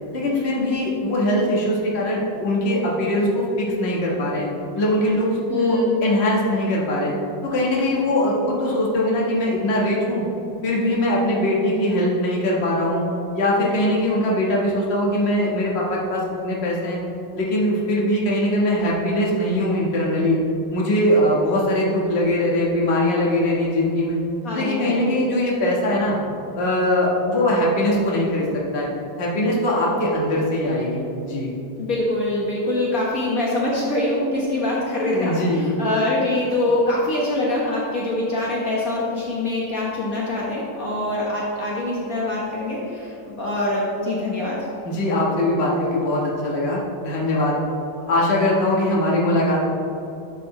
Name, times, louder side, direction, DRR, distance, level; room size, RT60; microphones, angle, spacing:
voice 1, 0.1-4.5 4.7-7.1 7.4-10.2 10.6-13.0 13.3-17.0 17.3-20.4 20.7-24.2 24.5-26.2 26.6-28.5 28.7-28.9 29.2-31.5 35.1-35.8 44.8-47.6 48.1-49.7, left 1 dB, 35° left, -4 dB, 1.6 m, -21 dB
voice 2, 5.5-5.9 24.4-25.1 29.9-30.0 31.8-44.7, left 2 dB, 55° left, -5 dB, 1.7 m, -24 dB
11.5 x 6.9 x 3.2 m, 2.8 s
omnidirectional pair, 2.0 m